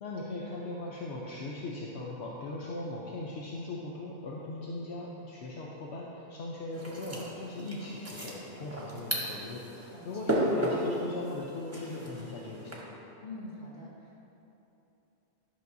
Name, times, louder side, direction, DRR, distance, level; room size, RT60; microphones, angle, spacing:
voice 1, 0.0-12.8, left 2 dB, 75° left, -4 dB, 1.0 m, -39 dB
sound 1, 6.7-12.7, equal, 15° right, 1.0 m, -35 dB
voice 2, 9.9-10.3 13.2-14.2, left 2 dB, 45° left, -7 dB, 1.8 m, -45 dB
11.0 x 6.0 x 2.7 m, 2.9 s
omnidirectional pair, 1.1 m